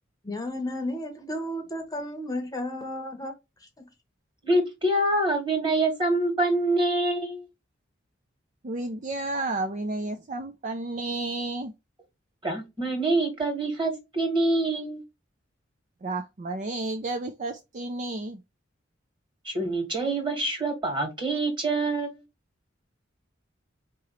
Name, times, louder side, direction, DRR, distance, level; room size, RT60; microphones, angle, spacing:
voice 1, 0.2-3.3 3.6-3.8, left 1 dB, 20° left, 0.8 m, -33 dB
voice 2, 4.4-7.4 12.4-15.0 19.5-22.2, right 2 dB, 25° right, 1.8 m, -25 dB
voice 3, 8.6-11.7 16.0-18.4, right 2 dB, 40° right, 0.5 m, -32 dB
4.8 x 3.0 x 3.0 m
head